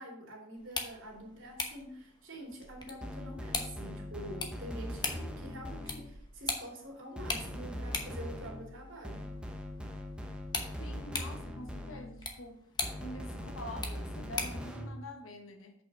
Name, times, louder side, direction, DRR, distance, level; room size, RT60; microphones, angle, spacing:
voice 1, 0.0-9.3, right 1 dB, 70° right, 2.7 m, -46 dB
sound 1, 0.6-14.7, left 4 dB, 20° left, 0.9 m, -42 dB
sound 2, 3.0-6.3 7.2-12.3 12.8-15.0, equal, 5° right, 0.8 m, -41 dB
voice 2, 10.8-12.6 13.0-15.7, left 1 dB, 80° left, 1.1 m, -46 dB
6.7 x 5.5 x 5.3 m
head